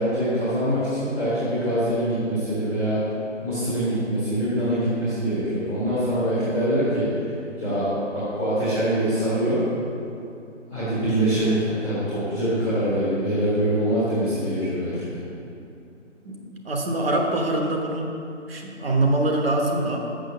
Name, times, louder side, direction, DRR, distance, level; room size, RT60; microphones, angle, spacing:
voice 1, 0.0-3.0 3.4-7.1 7.6-9.6 10.7-15.2, right 1 dB, 5° left, -18 dB, 0.8 m, -24 dB
voice 2, 16.2-18.1 18.5-20.0, right 2 dB, 50° right, 1 dB, 1.1 m, -24 dB
6.4 x 6.1 x 6.8 m, 2.7 s
hypercardioid pair, 165°, 37 cm